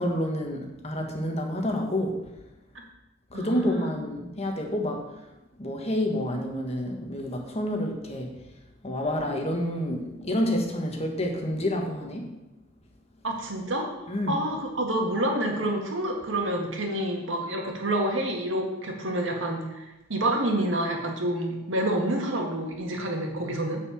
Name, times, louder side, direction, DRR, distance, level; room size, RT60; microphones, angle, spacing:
voice 1, 0.0-2.1 3.3-5.0 5.6-8.3 8.8-12.3 14.1-14.4, left 1 dB, 35° left, 2 dB, 1.5 m, -28 dB
voice 2, 3.3-3.9 13.2-13.9 14.3-23.8, right 1 dB, 75° right, 1 dB, 1.9 m, -28 dB
9.5 x 4.8 x 7.2 m, 0.98 s
head